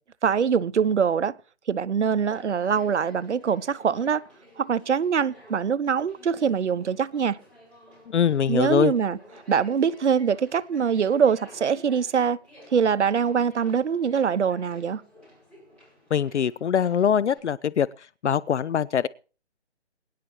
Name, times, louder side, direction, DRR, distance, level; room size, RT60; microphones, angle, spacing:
voice 1, 0.2-1.3 1.7-4.2 4.6-7.4 8.5-9.2 9.5-12.4 12.7-15.0, right 7 dB, 80° right, 0.8 m, -23 dB
Conversation, 2.2-17.4, equal, 5° left, 5.5 m, -52 dB
voice 2, 8.1-8.9 16.1-19.1, left 8 dB, 80° left, 0.6 m, -23 dB
23.0 x 10.5 x 3.1 m
hypercardioid pair, 160°, 34 cm